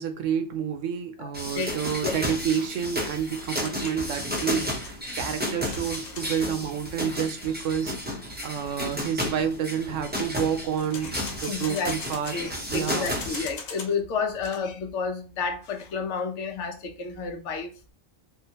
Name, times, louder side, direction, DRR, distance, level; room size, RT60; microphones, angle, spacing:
voice 1, 0.0-8.0 8.4-12.3 12.7-13.1, right 8 dB, 75° right, 0.9 m, -29 dB
sound 1, 1.3-13.5, left 1 dB, 15° right, 0.4 m, -32 dB
sound 2, 3.6-6.5 10.8-14.0 14.3-14.6, left 5 dB, 90° left, 1.1 m, -41 dB
voice 2, 11.4-11.9 12.3-17.9, left 5 dB, 70° left, 1.0 m, -30 dB
3.7 x 2.4 x 2.8 m
omnidirectional pair, 1.3 m